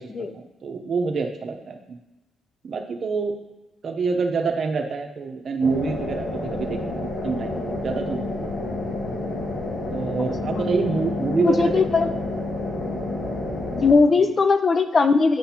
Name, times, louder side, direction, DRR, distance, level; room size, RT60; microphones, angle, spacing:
voice 1, 0.0-2.0 2.6-3.3 3.8-8.3 9.9-11.8 14.2-14.3, right 4 dB, 50° right, 5 dB, 0.7 m, -27 dB
sound 1, 5.6-13.9, left 2 dB, 85° left, 1.5 m, -29 dB
voice 2, 11.3-12.1 13.7-15.4, left 4 dB, 40° left, 9 dB, 0.4 m, -19 dB
9.1 x 4.0 x 2.9 m, 1.0 s
cardioid pair, 90°, 0 cm